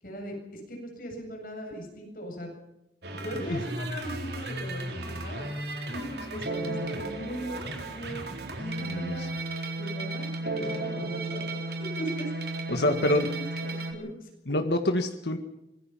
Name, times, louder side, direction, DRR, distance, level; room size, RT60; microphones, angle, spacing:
voice 1, 0.0-2.5 3.1-5.5 5.9-8.3 8.6-9.3 9.8-11.4 12.0-14.3, right 1 dB, 50° left, 2 dB, 7.9 m, -39 dB
sound 1, 3.0-13.9, right 2 dB, 70° right, 3.9 m, -34 dB
voice 2, 8.8-9.3 12.7-13.3 14.5-15.4, left 1 dB, 75° left, 6 dB, 1.8 m, -26 dB
25.0 x 21.5 x 5.8 m, 0.87 s
head